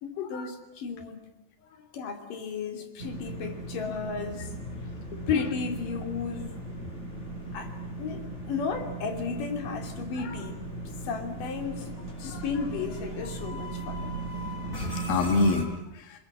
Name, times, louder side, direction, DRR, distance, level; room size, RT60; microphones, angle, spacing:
voice 1, 0.0-1.3 1.9-4.5 5.3-6.6 7.5-7.7 8.0-10.6 10.9-14.1, left 6 dB, 65° left, 6 dB, 4.6 m, -34 dB
sound 1, 3.0-15.6, right 2 dB, 20° left, 5.7 m, -37 dB
voice 2, 14.7-16.2, left 3 dB, 90° left, 6 dB, 3.6 m, -28 dB
28.0 x 21.0 x 8.7 m, 0.88 s
omnidirectional pair, 4.1 m